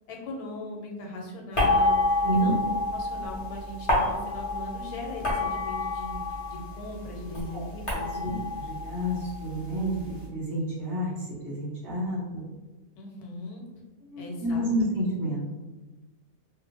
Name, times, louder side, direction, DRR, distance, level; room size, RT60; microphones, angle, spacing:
voice 1, 0.1-2.6 2.9-6.2 6.5-8.2 13.0-13.6 14.2-14.7, left 1 dB, 90° left, 0 dB, 1.1 m, -39 dB
sound 1, 1.5-6.8 7.1-10.0, left 2 dB, 35° left, 0.5 m, -28 dB
voice 2, 2.2-2.5 7.5-12.4 14.1-15.6, right 1 dB, 15° right, -7 dB, 0.7 m, -30 dB
2.4 x 2.0 x 3.3 m, 1.2 s
omnidirectional pair, 1.6 m